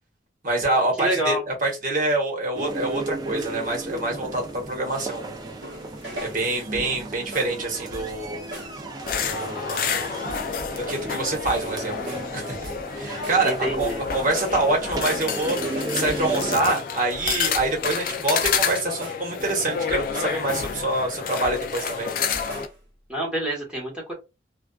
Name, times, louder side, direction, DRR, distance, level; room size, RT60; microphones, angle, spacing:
voice 1, 0.4-5.6 6.2-8.5 9.2-10.0 10.7-12.5 12.9-15.6 15.9-22.1, right 2 dB, 50° right, 0 dB, 1.0 m, -26 dB
voice 2, 1.0-1.4 13.4-14.0 23.1-24.1, equal, 5° right, -4 dB, 1.1 m, -27 dB
sound 1, 2.5-16.6, right 2 dB, 20° right, 0.4 m, -35 dB
sound 2, 5.6-7.0 7.3-7.6 7.9-8.2 8.5-8.8 9.1-9.4 9.7-10.0 10.3-11.2 11.4-12.3 12.6-12.9 13.2-15.2 15.5-18.1 18.4-18.7 19.0-19.3 19.6-21.0 21.3-22.0 22.3-22.8, right 1 dB, 80° right, 0.9 m, -39 dB
sound 3, 9.1-22.6, left 6 dB, 50° left, 0.4 m, -29 dB
2.4 x 2.3 x 2.3 m, 0.25 s
head